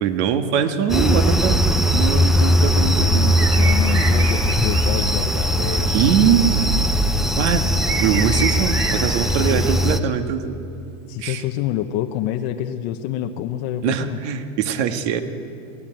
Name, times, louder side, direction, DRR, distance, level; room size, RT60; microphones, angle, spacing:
voice 1, 0.0-1.6 1.9-3.4 5.9-6.5 7.4-7.7 8.0-10.6 11.2-11.4 13.8-15.2, right 8 dB, 55° right, 7 dB, 1.9 m, -22 dB
sound 1, 0.9-10.0, equal, ahead, 0.6 m, -19 dB
voice 2, 3.1-5.9 11.1-14.2, left 12 dB, 45° left, 6 dB, 1.0 m, -27 dB
sound 2, 3.4-5.5 7.2-10.1, right 5 dB, 30° right, 3.3 m, -29 dB
22.5 x 17.0 x 9.1 m, 2.6 s
supercardioid pair, 135°, 41 cm